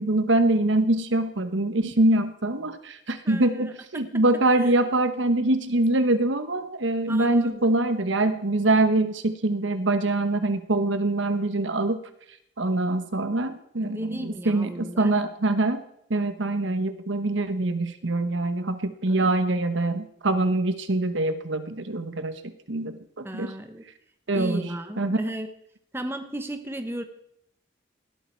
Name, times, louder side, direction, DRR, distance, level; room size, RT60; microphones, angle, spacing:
voice 1, 0.0-12.0 12.6-15.8 16.1-23.5 24.3-24.7 25.0-25.2, right 2 dB, 75° right, 10 dB, 1.1 m, -24 dB
voice 2, 3.2-3.7 4.5-4.8 7.1-7.8 13.8-15.1 19.0-19.3 23.2-23.8 24.3-25.5 25.9-27.0, right 1 dB, 10° right, 7 dB, 1.0 m, -35 dB
18.5 x 13.0 x 4.6 m, 0.73 s
head